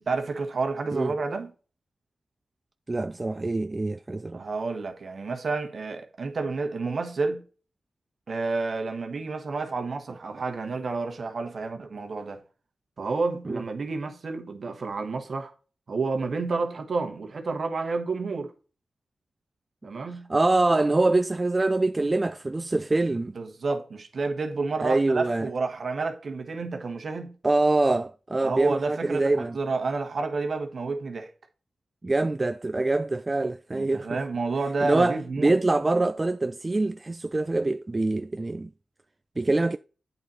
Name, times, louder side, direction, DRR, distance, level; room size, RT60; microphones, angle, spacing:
voice 1, 0.1-1.5 4.3-7.4 8.3-12.4 13.0-15.5 15.9-18.5 19.8-20.3 23.3-27.3 28.4-31.3 33.7-35.5, right 3 dB, 65° right, 1.4 m, -30 dB
voice 2, 2.9-4.4 13.5-13.6 20.3-23.3 24.8-25.5 27.4-29.6 32.0-34.2 34.8-38.7 39.4-39.8, right 2 dB, 30° right, 0.3 m, -24 dB
8.5 x 4.0 x 4.3 m
cardioid pair, 50°, 0 cm